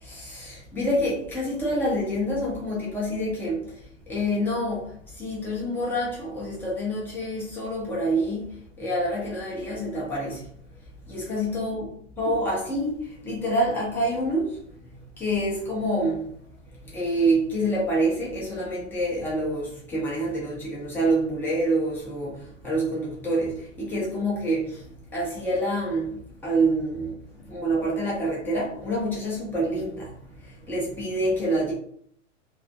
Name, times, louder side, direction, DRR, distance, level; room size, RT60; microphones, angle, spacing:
voice 1, 0.0-3.6 4.1-10.5 11.1-11.9 12.2-14.6 15.2-16.3 16.9-24.8 25.1-27.2 27.5-30.1 30.4-31.7, right 1 dB, 5° left, 0.3 m, -27 dB
2.3 x 2.3 x 2.5 m
hypercardioid pair, 110°, 39 cm